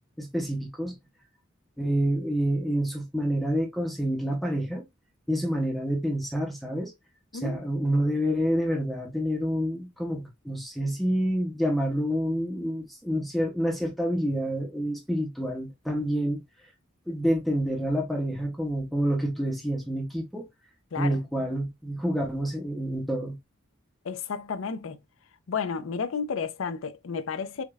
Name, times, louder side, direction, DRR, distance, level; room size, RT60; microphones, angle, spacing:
voice 1, 0.2-1.0 1.8-4.8 5.3-6.9 7.3-16.4 17.1-20.5 21.0-23.4, equal, ahead, 0.6 m, -28 dB
voice 2, 24.0-25.0 25.5-27.6, left 5 dB, 75° left, 0.5 m, -32 dB
4.9 x 2.2 x 2.3 m
head